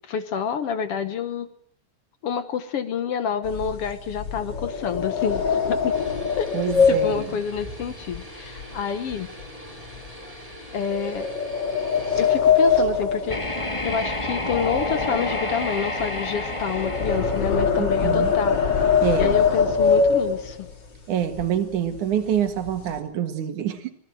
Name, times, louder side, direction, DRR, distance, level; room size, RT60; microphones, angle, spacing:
voice 1, 0.1-1.5 2.2-6.0 6.4-6.5 6.9-9.3 10.7-11.3 12.2-18.9 19.2-20.7, left 7 dB, 60° left, 11 dB, 1.9 m, -28 dB
sound 1, 3.4-8.8 9.1-9.4 9.9-10.1 10.9-14.2 14.5-20.7 21.3-21.4 21.7-22.0 22.3-23.0, left 5 dB, 40° left, 2.9 m, -23 dB
sound 2, 5.9-12.3, equal, 10° right, 4.9 m, -42 dB
voice 2, 6.5-7.3 17.8-18.3 19.0-19.4 21.1-23.9, right 9 dB, 90° right, 8 dB, 3.3 m, -26 dB
sound 3, 13.3-18.2, left 2 dB, 15° left, 1.6 m, -29 dB
26.0 x 19.5 x 7.7 m, 0.62 s
omnidirectional pair, 3.4 m